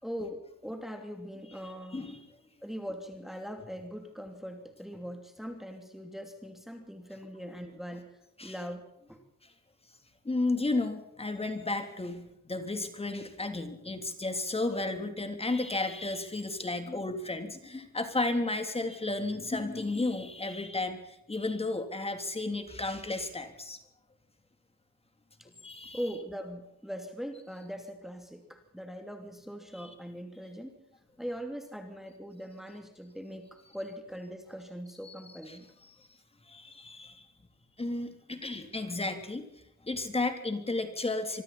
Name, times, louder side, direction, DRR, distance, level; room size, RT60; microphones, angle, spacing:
voice 1, 0.0-2.1 2.6-8.1 8.4-9.2 25.4-25.5 25.9-30.7 31.2-35.7, equal, ahead, 5 dB, 2.9 m, -41 dB
voice 2, 1.6-2.3 8.4-8.5 9.4-9.5 10.2-23.8 25.6-26.0 29.8-29.9 35.0-35.1 35.5-36.1 36.4-37.3 37.8-39.4 39.8-41.4, left 2 dB, 20° left, 6 dB, 3.2 m, -33 dB
25.0 x 24.5 x 4.3 m, 0.81 s
cardioid pair, 120°, 31 cm